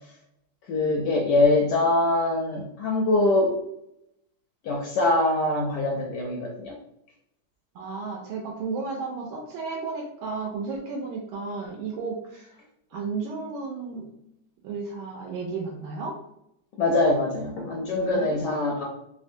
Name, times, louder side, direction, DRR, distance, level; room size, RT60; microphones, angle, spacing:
voice 1, 0.7-3.6 4.6-6.7 16.8-18.8, left 2 dB, 75° left, -1 dB, 1.0 m, -23 dB
voice 2, 7.7-12.5 12.9-14.1 14.6-16.2 18.0-18.8, right 4 dB, 80° right, -1 dB, 1.3 m, -33 dB
3.5 x 2.1 x 2.6 m, 0.78 s
omnidirectional pair, 2.2 m